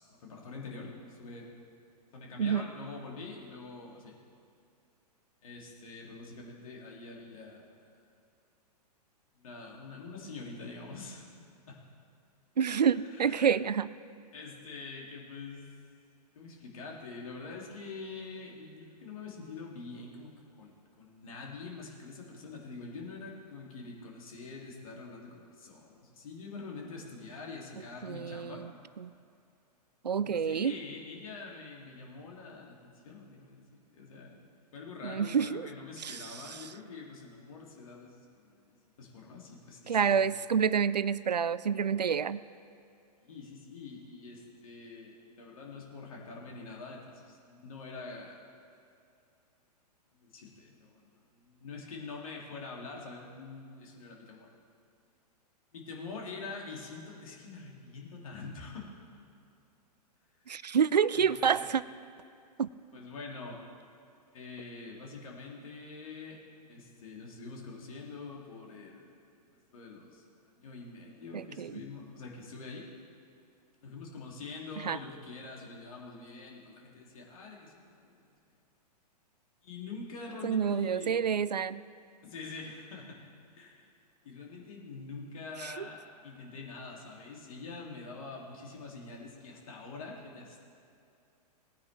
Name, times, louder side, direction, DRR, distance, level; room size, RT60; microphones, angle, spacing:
voice 1, 0.0-1.5 2.1-4.2 5.4-8.0 9.4-11.3 11.7-11.8 13.0-13.5 14.3-15.7 16.4-28.6 30.2-34.4 34.7-40.2 43.2-48.4 50.1-54.5 55.7-59.2 61.1-61.7 62.9-63.6 64.3-69.2 69.7-70.2 70.5-72.9 73.8-78.2 79.6-81.2 82.2-83.2 83.5-83.9 84.2-90.6, left 4 dB, 55° left, -1 dB, 2.6 m, -45 dB
voice 2, 12.6-13.9 28.0-28.7 29.0-29.1 30.0-30.8 35.0-35.7 36.0-36.7 39.9-42.4 60.5-61.8 62.6-62.7 71.3-71.8 74.8-75.0 80.4-81.8 85.6-85.9, right 7 dB, 80° right, 18 dB, 0.4 m, -28 dB
19.5 x 9.5 x 3.4 m, 2.6 s
figure-of-eight pair, 110°, 21 cm